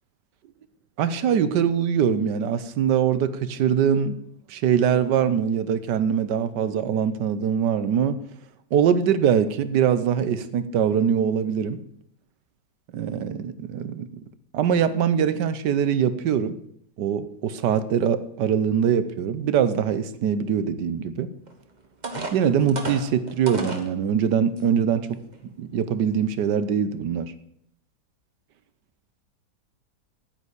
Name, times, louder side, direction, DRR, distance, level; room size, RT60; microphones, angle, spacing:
voice 1, 1.0-4.2 4.5-8.2 8.7-11.8 12.9-14.1 14.5-16.6 17.0-21.3 22.3-25.0 25.6-27.3, right 8 dB, 85° right, 1.5 m, -23 dB
sound 1, 21.5-21.6 22.0-23.9 24.6-24.7 25.2-25.4, right 3 dB, 30° right, 1.4 m, -32 dB
9.6 x 9.4 x 8.1 m
omnidirectional pair, 1.8 m